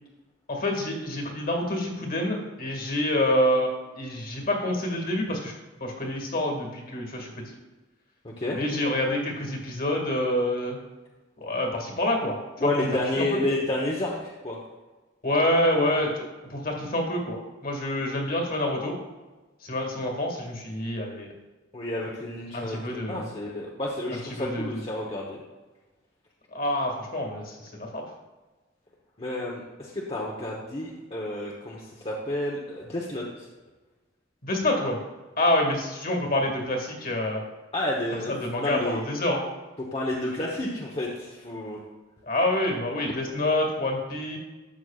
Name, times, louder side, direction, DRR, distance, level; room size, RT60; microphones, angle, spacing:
voice 1, 0.5-3.7 4.0-5.5 5.8-7.6 8.5-10.8 11.4-12.9 13.2-13.4 15.2-17.4 17.6-19.0 19.6-21.3 22.5-23.3 24.3-24.8 26.5-28.0 34.4-35.0 35.4-37.4 38.3-39.4 42.3-44.4, left 1 dB, 50° left, 1 dB, 2.0 m, -27 dB
voice 2, 8.2-8.6 12.6-14.6 21.7-25.4 29.2-33.5 37.7-39.0 39.8-41.8, left 1 dB, 30° left, -3 dB, 1.0 m, -30 dB
12.5 x 8.0 x 2.4 m, 1.2 s
head